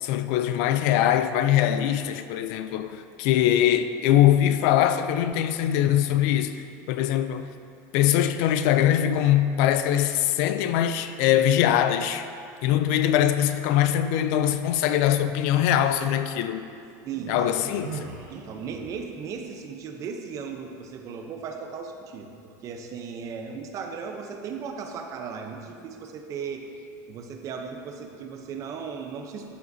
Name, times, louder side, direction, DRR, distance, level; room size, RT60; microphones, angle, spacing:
voice 1, 0.0-7.5 7.9-12.3 12.6-16.6 17.3-18.1, left 11 dB, 60° left, 0.4 m, -22 dB
Human voice, 15.5-16.2 17.1-19.1, right 5 dB, 70° right, 1.1 m, -41 dB
voice 2, 17.0-17.5 18.3-26.7 27.1-29.5, right 6 dB, 35° right, 0.7 m, -36 dB
12.5 x 7.6 x 2.7 m
supercardioid pair, 150°, 10 cm